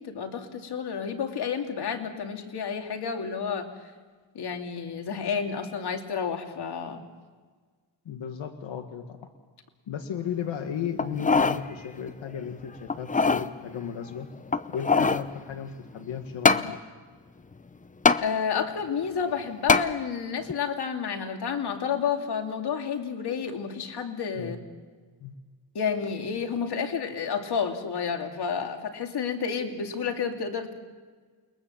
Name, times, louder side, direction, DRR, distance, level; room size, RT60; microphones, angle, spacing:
voice 1, 0.0-3.7 4.3-7.0 18.2-24.6 25.7-30.7, left 6 dB, 60° left, 4 dB, 2.7 m, -30 dB
voice 2, 8.1-9.3 9.9-14.3 14.7-16.8 24.4-24.5 25.2-25.3, left 8 dB, 80° left, 5 dB, 1.8 m, -35 dB
sound 1, 11.0-11.6 12.1-12.2 12.9-13.5 14.5-15.3 16.4-16.7 18.0-18.2 19.7-19.9 20.5-20.6, left 4 dB, 20° left, 0.6 m, -21 dB
29.5 x 22.0 x 7.3 m, 1.5 s
wide cardioid pair, 160°, 45 cm